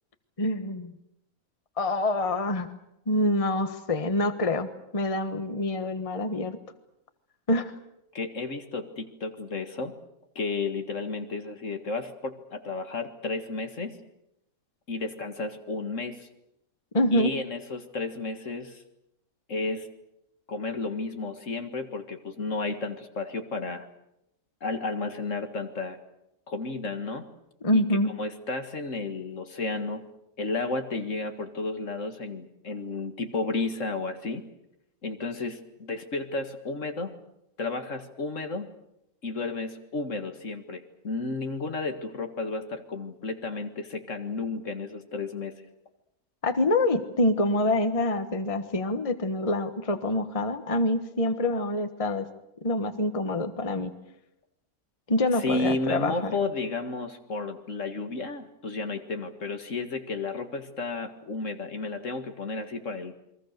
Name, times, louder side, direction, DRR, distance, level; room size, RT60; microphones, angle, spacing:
voice 1, 0.4-0.9 1.8-2.7 3.1-4.7 4.9-6.6 7.5-7.7 16.9-17.3 27.6-28.1 46.4-52.3 52.6-53.9 55.1-56.3, left 1 dB, 25° left, 9 dB, 1.3 m, -26 dB
voice 2, 8.1-9.9 10.4-14.0 14.9-16.3 17.1-18.8 19.5-19.9 20.5-23.9 24.6-26.0 26.5-27.2 27.7-30.0 30.4-34.4 35.0-37.1 37.6-38.7 39.2-45.5 55.4-63.1, left 3 dB, 60° left, 7 dB, 2.1 m, -32 dB
29.0 x 22.5 x 6.7 m, 0.85 s
omnidirectional pair, 1.5 m